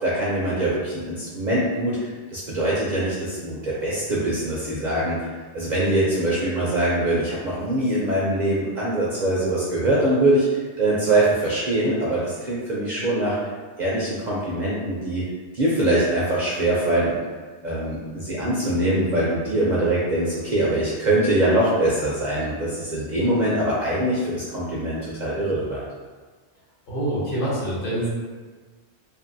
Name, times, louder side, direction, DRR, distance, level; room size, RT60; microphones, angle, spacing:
voice 1, 0.0-2.0 2.3-5.3 5.5-13.4 13.8-15.2 15.5-17.2 17.6-25.8, right 1 dB, 55° right, -7 dB, 0.5 m, -23 dB
voice 2, 26.9-28.1, right 1 dB, 50° left, -8 dB, 1.0 m, -25 dB
2.6 x 2.6 x 2.6 m, 1.4 s
omnidirectional pair, 1.2 m